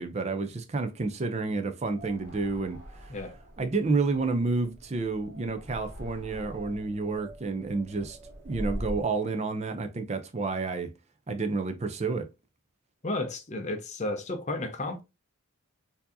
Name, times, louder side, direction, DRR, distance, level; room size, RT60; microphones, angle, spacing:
voice 1, 0.0-3.1 3.6-8.2 8.4-10.9 11.3-12.3, right 3 dB, 30° right, 0.4 m, -30 dB
sound 1, 1.8-9.2, equal, 10° right, 1.6 m, -42 dB
voice 2, 13.0-15.0, left 2 dB, 30° left, 0.6 m, -32 dB
4.5 x 2.7 x 2.6 m
head